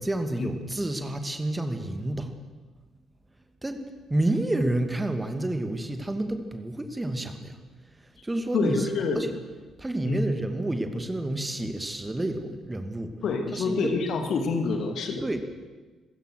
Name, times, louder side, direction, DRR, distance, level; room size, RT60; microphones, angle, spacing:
voice 1, 0.0-2.3 3.6-3.8 4.1-7.6 8.0-9.3 9.8-13.2 13.5-13.9 15.2-15.4, right 1 dB, 15° right, 7 dB, 2.4 m, -29 dB
voice 2, 8.5-9.2 10.0-10.2 13.2-15.2, left 4 dB, 55° left, 5 dB, 2.4 m, -27 dB
26.5 x 15.5 x 6.5 m, 1.3 s
figure-of-eight pair, 45°, 0 cm